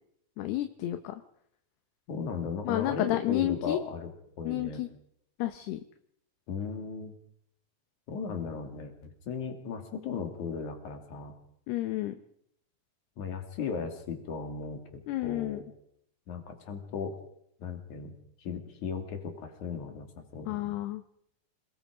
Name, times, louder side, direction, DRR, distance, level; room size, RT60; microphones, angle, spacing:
voice 1, 0.4-1.2 2.6-3.8 4.5-4.9 5.4-5.8 11.7-12.1 15.1-15.6 20.5-21.0, left 15 dB, 75° left, 8 dB, 2.8 m, -31 dB
voice 2, 2.1-4.1 4.4-4.9 6.5-7.1 8.1-11.3 13.2-15.6 16.3-17.2 17.6-20.8, left 5 dB, 50° left, 5 dB, 3.6 m, -36 dB
28.0 x 19.0 x 5.1 m, 0.72 s
omnidirectional pair, 5.0 m